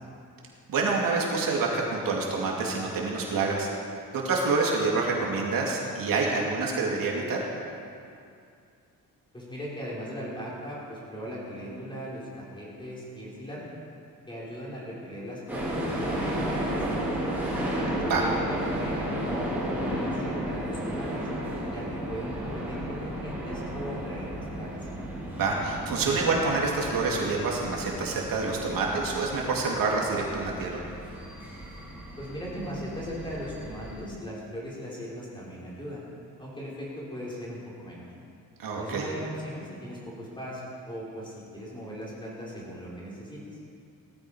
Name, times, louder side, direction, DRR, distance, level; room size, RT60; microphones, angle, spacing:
voice 1, 0.7-3.7 4.1-7.4 18.0-18.3 25.3-30.8 38.6-39.1, right 3 dB, 75° right, -2 dB, 2.6 m, -27 dB
voice 2, 9.3-13.6 14.3-17.5 18.2-21.3 21.7-24.9 32.2-36.0 36.4-38.1 38.8-43.5, equal, 15° left, -6 dB, 4.5 m, -38 dB
sound 1, 15.5-34.0, right 1 dB, 5° right, 4.7 m, -33 dB
18.0 x 14.0 x 5.0 m, 2.4 s
wide cardioid pair, 160°, 34 cm